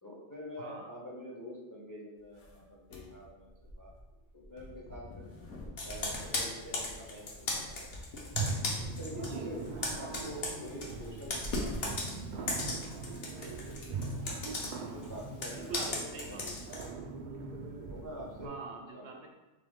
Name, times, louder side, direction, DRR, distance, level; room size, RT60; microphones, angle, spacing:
voice 1, 0.0-3.9 4.3-5.3 5.8-7.9 8.8-12.0 12.6-13.5 14.4-16.8 17.9-18.5 18.9-19.3, equal, 20° left, -5 dB, 0.7 m, -46 dB
voice 2, 0.6-0.9 9.3-9.5 13.4-14.5 15.5-16.5 18.4-19.3, right 4 dB, 70° right, 1 dB, 0.9 m, -46 dB
sound 1, 2.2-15.0, left 1 dB, 80° left, 1.1 m, -46 dB
Computer keyboard, 5.8-9.4 9.6-16.9, left 2 dB, 60° left, 1.0 m, -37 dB
sound 2, 8.3-18.5, right 3 dB, 55° right, 0.5 m, -41 dB
3.6 x 3.4 x 3.6 m, 1.1 s
omnidirectional pair, 1.2 m